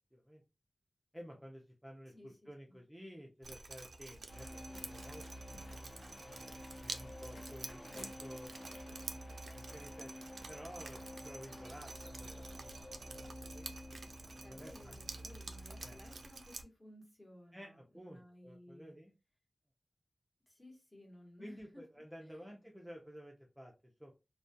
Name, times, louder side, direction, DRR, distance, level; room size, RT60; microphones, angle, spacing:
voice 1, 0.1-0.4 1.1-5.9 6.8-8.6 9.5-10.1 10.5-13.7 14.5-15.4 15.7-16.0 17.5-19.1 21.4-23.7 24.0-24.1, equal, 5° right, 0.5 m, -53 dB
voice 2, 2.1-2.8 7.6-8.1 14.4-19.0 20.5-21.8 22.2-22.5, left 1 dB, 25° left, 1.0 m, -58 dB
Drip, 3.4-16.6, right 3 dB, 75° right, 0.3 m, -50 dB
sound 1, 4.3-16.3, equal, 55° left, 1.0 m, -50 dB
sound 2, 4.7-6.0 7.0-8.3 10.0-10.1, left 2 dB, 75° left, 0.7 m, -58 dB
2.2 x 2.2 x 2.6 m
wide cardioid pair, 90°, 0 cm